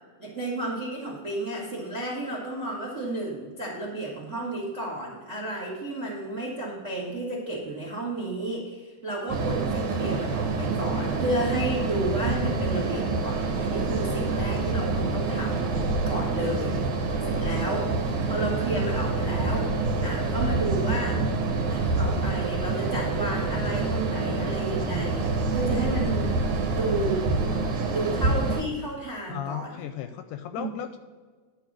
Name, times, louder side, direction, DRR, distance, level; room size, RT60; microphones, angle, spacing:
voice 1, 0.2-15.7 16.0-16.8 17.3-17.9 18.3-19.7 20.0-21.2 21.7-26.3 26.7-27.2 27.9-29.8 30.6-30.7, right 2 dB, 45° right, -2 dB, 0.9 m, -32 dB
sound 1, 9.3-28.6, right 3 dB, 70° right, 2.2 m, -27 dB
voice 2, 29.3-31.0, left 10 dB, 80° left, 8 dB, 2.0 m, -35 dB
10.5 x 4.8 x 6.1 m, 1.4 s
omnidirectional pair, 4.0 m